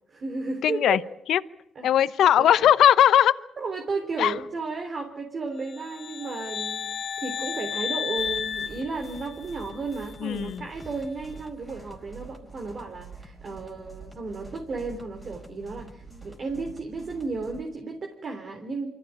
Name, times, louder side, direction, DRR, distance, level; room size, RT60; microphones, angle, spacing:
voice 1, 0.1-1.0 1.8-1.9 2.4-2.5 3.6-18.9, right 3 dB, 45° right, 3 dB, 3.6 m, -33 dB
voice 2, 0.6-1.0 1.3-1.4 1.8-3.3 4.2-4.3 10.2-10.6, left 10 dB, 75° left, 15 dB, 0.8 m, -19 dB
sound 1, 5.7-9.7, left 7 dB, 55° left, 1.2 m, -33 dB
sound 2, 8.2-17.6, right 4 dB, 15° right, 4.5 m, -46 dB
25.5 x 15.0 x 9.3 m, 0.80 s
cardioid pair, 90°, 0 cm